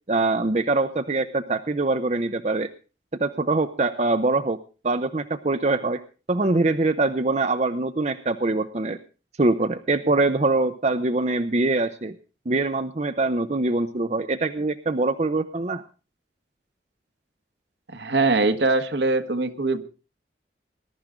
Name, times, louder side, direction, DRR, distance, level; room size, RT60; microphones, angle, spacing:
voice 1, 0.1-2.7 3.2-4.6 4.8-6.0 6.3-9.0 9.4-12.2 12.5-15.8, right 2 dB, 35° right, 9 dB, 0.7 m, -23 dB
voice 2, 17.9-19.8, right 3 dB, 75° right, 9 dB, 1.4 m, -22 dB
20.5 x 12.0 x 3.7 m, 0.34 s
head